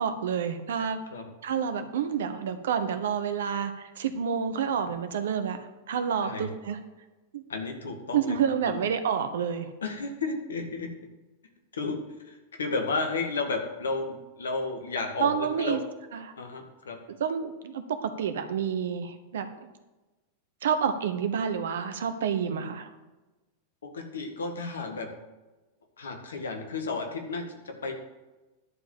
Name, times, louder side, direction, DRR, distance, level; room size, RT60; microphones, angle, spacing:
voice 1, 0.0-1.0 1.4-5.6 5.9-6.8 7.3-7.4 8.1-9.7 15.2-15.8 16.1-16.3 17.2-19.7 20.6-22.9, right 7 dB, 60° right, 10 dB, 1.1 m, -29 dB
voice 2, 7.5-8.8 9.8-10.9 11.7-12.0 12.2-15.8 16.4-17.0 23.8-25.1 26.0-27.9, left 3 dB, 70° left, 4 dB, 1.8 m, -33 dB
11.0 x 5.0 x 7.3 m, 1.1 s
figure-of-eight pair, 90°, 0 cm